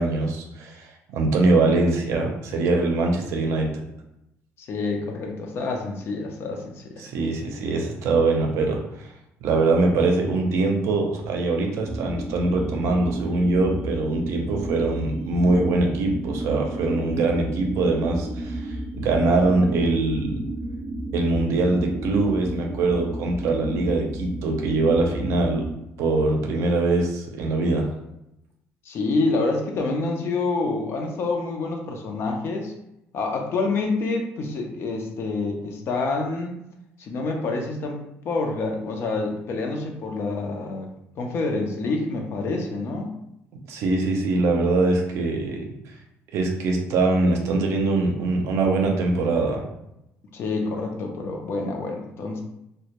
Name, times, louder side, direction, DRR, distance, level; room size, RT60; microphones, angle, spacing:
voice 1, 0.0-3.7 7.0-9.1 9.4-18.6 18.9-20.4 21.1-25.7 26.0-27.9 43.7-45.7 46.3-49.6, right 3 dB, 70° right, 2 dB, 0.5 m, -23 dB
voice 2, 4.6-7.1 28.9-32.7 33.1-36.6 37.0-38.0 38.2-43.1 50.3-52.4, left 3 dB, 55° left, 2 dB, 0.5 m, -27 dB
sound 1, 11.9-25.8, right 1 dB, 10° right, 0.4 m, -32 dB
2.1 x 2.1 x 2.8 m, 0.84 s
cardioid pair, 110°, 5 cm